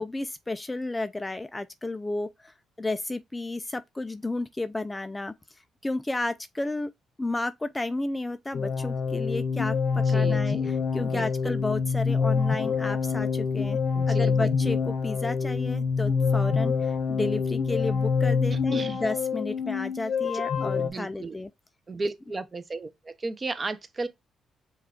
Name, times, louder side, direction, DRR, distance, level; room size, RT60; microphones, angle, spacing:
voice 1, 0.0-5.3 5.8-6.9 7.2-13.8 14.1-21.5, left 2 dB, 15° left, 0.3 m, -32 dB
sound 1, 8.5-20.9, left 5 dB, 60° left, 0.8 m, -26 dB
voice 2, 10.1-10.7 11.0-11.6 13.9-14.5 18.5-19.0 20.7-21.4 21.9-24.1, right 3 dB, 30° right, 0.7 m, -35 dB
5.4 x 2.4 x 3.6 m
cardioid pair, 90°, 0 cm